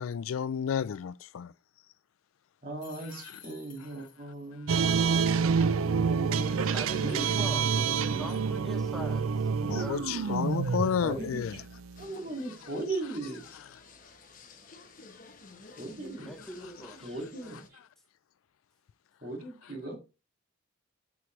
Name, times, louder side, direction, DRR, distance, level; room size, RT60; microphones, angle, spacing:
voice 1, 0.0-1.5 4.0-4.1 4.7-4.9 9.6-11.6, left 7 dB, 80° left, 0.3 m, -31 dB
voice 2, 2.6-4.8 6.1-8.3 11.0-11.6 12.0-13.4 15.8-16.3 17.0-17.8 19.2-20.0, right 2 dB, 45° right, 2.0 m, -38 dB
sound 1, 2.8-4.5, left 5 dB, 20° left, 2.0 m, -53 dB
sound 2, 4.7-12.0, right 5 dB, 85° right, 0.4 m, -28 dB
voice 3, 6.7-10.7 16.2-17.5, equal, ahead, 0.8 m, -44 dB
sound 3, 11.9-17.7, left 3 dB, 40° left, 1.1 m, -52 dB
7.4 x 6.1 x 3.2 m
head